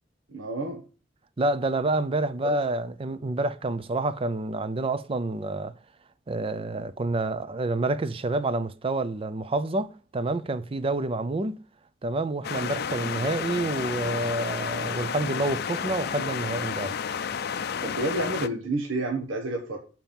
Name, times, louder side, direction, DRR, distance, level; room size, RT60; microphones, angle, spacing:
voice 1, 0.3-0.8 2.4-2.6 12.6-12.7 17.8-19.8, right 2 dB, 85° right, 1.3 m, -30 dB
voice 2, 1.4-5.7 6.3-11.6 12.0-17.0, right 2 dB, 30° right, 0.5 m, -28 dB
sound 1, 12.4-18.5, left 7 dB, 55° left, 0.5 m, -31 dB
7.5 x 4.5 x 7.0 m
head